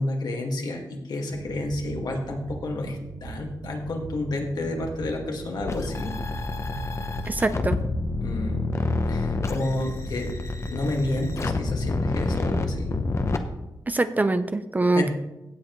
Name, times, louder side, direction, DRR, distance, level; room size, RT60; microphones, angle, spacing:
voice 1, 0.0-6.1 8.2-8.7 9.1-10.3 10.7-12.9 15.0-15.1, left 2 dB, 65° left, 1 dB, 2.0 m, -30 dB
sound 1, 1.3-12.1, right 4 dB, 75° right, 1.1 m, -40 dB
sound 2, 5.7-13.4, left 3 dB, 40° left, 0.9 m, -28 dB
voice 2, 7.3-7.8 13.9-15.1, right 2 dB, 25° right, 11 dB, 0.5 m, -23 dB
16.5 x 7.5 x 3.2 m, 0.96 s
wide cardioid pair, 95°, 7 cm